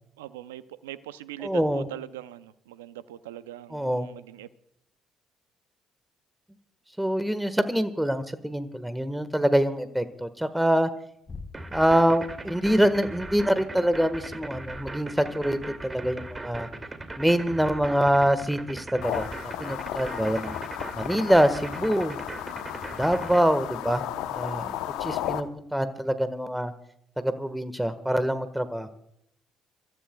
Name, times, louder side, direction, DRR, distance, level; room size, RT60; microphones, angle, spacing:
voice 1, 0.2-4.5 25.0-25.2, right 13 dB, 90° right, 14 dB, 0.5 m, -41 dB
voice 2, 1.4-1.9 3.7-4.1 7.0-10.9 11.7-16.7 17.2-20.6 20.9-22.2 22.9-24.0 24.3-24.7 25.0-26.7 27.2-28.9, equal, 5° right, 12 dB, 1.5 m, -25 dB
sound 1, 8.5-14.0, left 4 dB, 35° left, 6.1 m, -48 dB
sound 2, 11.5-23.4, right 2 dB, 25° right, 2.4 m, -38 dB
sound 3, 19.0-25.4, left 12 dB, 75° left, 0.8 m, -34 dB
30.0 x 14.0 x 2.3 m, 0.74 s
hypercardioid pair, 55°, 0 cm